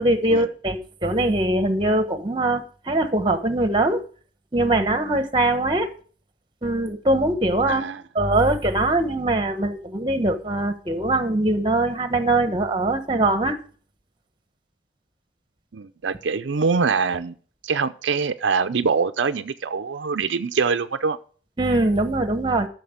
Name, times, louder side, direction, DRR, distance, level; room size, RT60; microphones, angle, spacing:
voice 1, 0.0-4.0 4.5-5.9 6.6-7.9 8.1-13.6 21.6-22.7, right 2 dB, 25° right, 1.2 m, -22 dB
voice 2, 7.7-8.0 15.7-17.4 17.6-21.2, right 5 dB, 75° right, 0.5 m, -24 dB
13.0 x 6.5 x 5.1 m
head